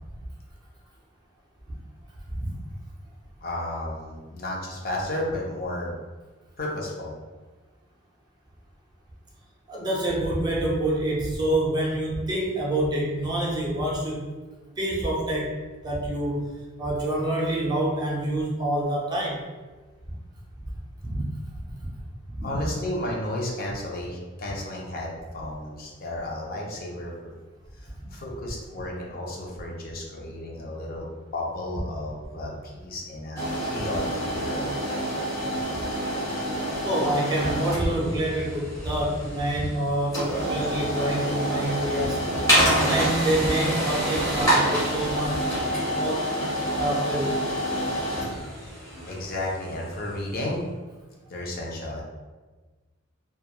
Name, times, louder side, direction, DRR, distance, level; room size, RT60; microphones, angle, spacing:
voice 1, 2.3-2.6 9.7-14.3 14.8-15.6 15.8-16.5 16.8-19.4 21.0-21.2 21.6-21.9 22.3-22.6 36.8-45.5 45.8-46.2 46.7-47.5, right 1 dB, 20° right, -4 dB, 0.5 m, -27 dB
voice 2, 3.4-5.9 6.6-7.1 22.4-27.1 28.1-31.1 31.3-34.9 49.1-50.6 51.3-52.0, left 1 dB, 45° left, -2 dB, 0.5 m, -33 dB
sound 1, 33.4-50.2, equal, 15° left, 1.0 m, -27 dB
2.9 x 2.3 x 2.2 m, 1.3 s
head